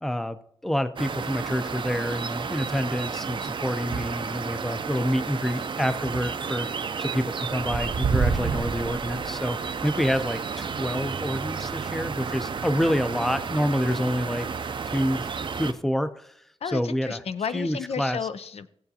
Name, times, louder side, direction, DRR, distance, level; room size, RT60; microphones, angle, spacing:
voice 1, 0.0-6.7 7.0-14.5 14.9-15.2 15.6-16.3 16.6-17.2 17.5-18.2, equal, 5° left, 0.5 m, -27 dB
sound 1, 1.0-15.7, right 5 dB, 50° right, 0.5 m, -31 dB
voice 2, 16.6-18.7, left 6 dB, 75° left, 0.5 m, -32 dB
16.5 x 7.8 x 2.8 m
wide cardioid pair, 155°, 11 cm